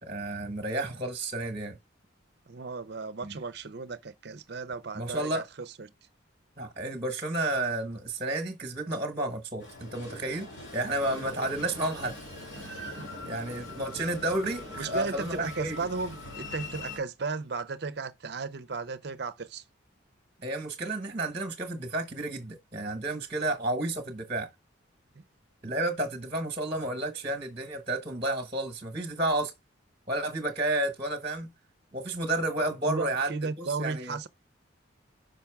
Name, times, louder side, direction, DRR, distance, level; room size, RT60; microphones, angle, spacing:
voice 1, 0.0-1.8 3.2-3.4 4.9-5.4 6.6-12.2 13.3-15.8 20.4-24.5 25.6-29.5 30.1-31.5 31.9-33.3 33.6-34.2, right 2 dB, 30° right, 1.1 m, -31 dB
voice 2, 2.5-5.9 12.9-13.1 14.8-19.6 25.2-25.3 32.6-34.3, right 4 dB, 55° right, 0.6 m, -35 dB
Train, 9.6-17.0, left 2 dB, 65° left, 2.9 m, -42 dB
5.8 x 5.1 x 3.5 m
head